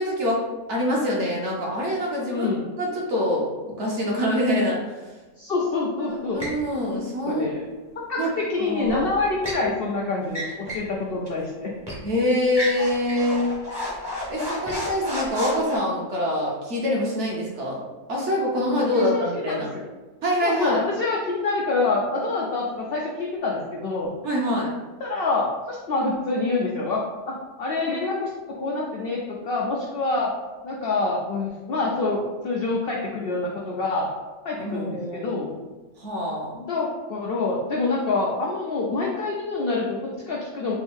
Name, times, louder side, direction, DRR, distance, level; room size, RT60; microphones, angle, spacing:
voice 1, 0.0-4.8 6.0-7.5 8.2-8.3 8.6-9.1 12.0-13.5 14.3-17.8 18.1-19.7 20.2-20.8 24.2-24.7 34.6-35.4 36.0-36.5, left 1 dB, 55° right, -3 dB, 1.0 m, -25 dB
voice 2, 2.3-2.7 5.4-6.4 7.3-7.6 8.1-11.7 18.9-19.8 20.4-24.1 25.0-30.3 30.6-34.1 34.4-35.5 36.5-40.7, left 3 dB, 80° left, -2 dB, 0.5 m, -26 dB
sound 1, 6.4-6.6 8.8-9.7 10.3-10.9 11.3-11.4 11.9-12.1 12.5-15.8, left 1 dB, 20° right, 0.7 m, -32 dB
3.5 x 2.6 x 3.5 m, 1.2 s
omnidirectional pair, 1.6 m